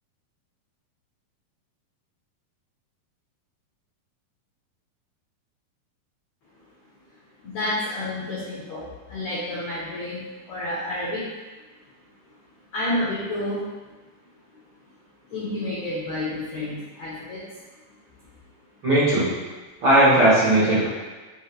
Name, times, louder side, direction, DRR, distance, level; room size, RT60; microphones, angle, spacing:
voice 1, 7.4-11.3 12.7-13.6 15.3-17.4, left 1 dB, 85° left, -7 dB, 1.5 m, -30 dB
voice 2, 18.8-19.3 19.8-20.9, right 1 dB, 80° right, -13 dB, 1.0 m, -17 dB
6.1 x 2.4 x 3.3 m, 1.3 s
omnidirectional pair, 4.3 m